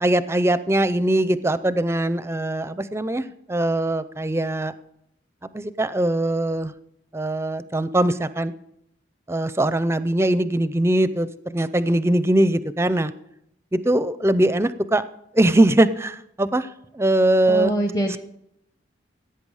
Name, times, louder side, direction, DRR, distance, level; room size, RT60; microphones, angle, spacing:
voice 1, 0.0-4.7 5.5-6.7 7.1-8.5 9.3-13.1 13.7-15.0 15.3-16.7 16.9-17.8 18.1-18.2, right 1 dB, 15° right, 14 dB, 0.5 m, -21 dB
voice 2, 17.5-18.2, right 1 dB, 20° left, 4 dB, 0.7 m, -24 dB
16.0 x 8.7 x 4.9 m, 0.80 s
head